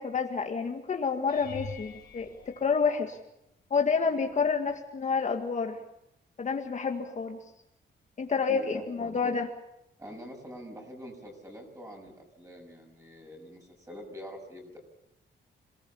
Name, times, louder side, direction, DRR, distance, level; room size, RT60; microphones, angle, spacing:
voice 1, 0.0-3.2 3.7-5.8 6.4-7.4 8.2-9.5, left 5 dB, 40° left, 3 dB, 1.9 m, -29 dB
sound 1, 1.3-3.6 4.3-4.7 5.1-5.2 9.6-9.7, left 6 dB, 55° left, 4.5 m, -46 dB
voice 2, 8.5-9.2 10.0-14.8, equal, 15° right, 2 dB, 6.8 m, -45 dB
27.0 x 19.0 x 7.3 m, 0.82 s
wide cardioid pair, 155°, 19 cm